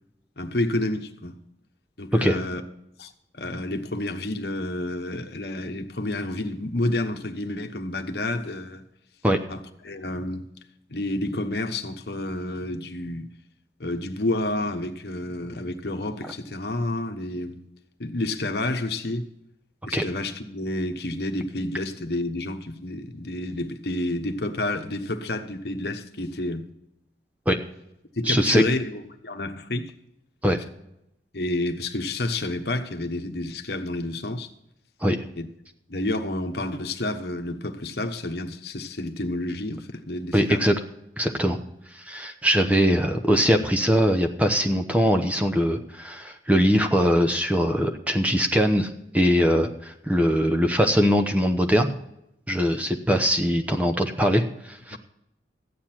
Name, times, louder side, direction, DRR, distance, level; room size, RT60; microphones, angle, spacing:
voice 1, 0.4-1.3 2.0-2.6 3.0-8.8 9.5-10.5 10.9-13.3 13.8-17.6 18.0-19.3 19.9-26.7 28.2-29.9 31.3-34.5 35.4-35.5 35.9-40.7 54.9-55.0, left 1 dB, 65° left, 1.1 m, -29 dB
voice 2, 28.3-28.6 30.4-30.6 35.0-35.2 40.3-40.7 41.2-41.6 41.9-51.9 52.5-55.0, equal, 10° right, 0.8 m, -22 dB
14.0 x 9.6 x 4.4 m
head